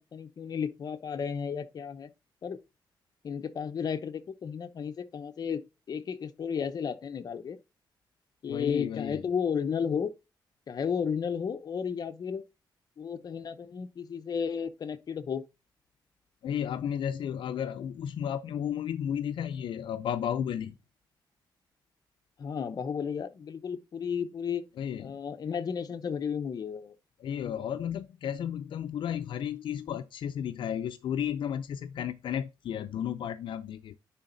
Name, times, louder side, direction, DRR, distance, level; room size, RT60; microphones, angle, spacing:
voice 1, 0.0-2.1 2.4-2.6 3.2-5.6 5.9-7.6 8.4-10.1 10.7-12.4 13.0-15.4 22.4-24.6 25.0-26.9, left 7 dB, 50° left, 0.8 m, -33 dB
voice 2, 8.5-9.2 16.4-20.7 24.8-25.2 27.2-34.0, left 9 dB, 80° left, 0.5 m, -33 dB
10.0 x 3.9 x 4.0 m
wide cardioid pair, 135°, 8 cm